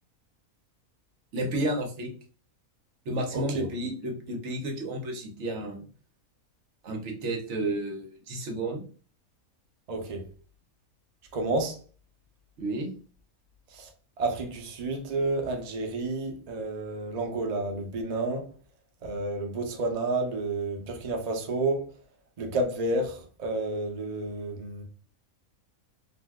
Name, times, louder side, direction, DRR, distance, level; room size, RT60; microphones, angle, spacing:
voice 1, 1.3-2.1 3.1-5.8 6.8-8.8 12.6-12.9, right 1 dB, 60° right, 0.9 m, -31 dB
voice 2, 3.3-3.6 9.9-10.2 11.3-11.8 13.7-13.9 14.2-18.4 19.0-21.9 22.4-24.8, right 2 dB, 75° right, 0.3 m, -30 dB
2.6 x 2.1 x 3.3 m
omnidirectional pair, 1.5 m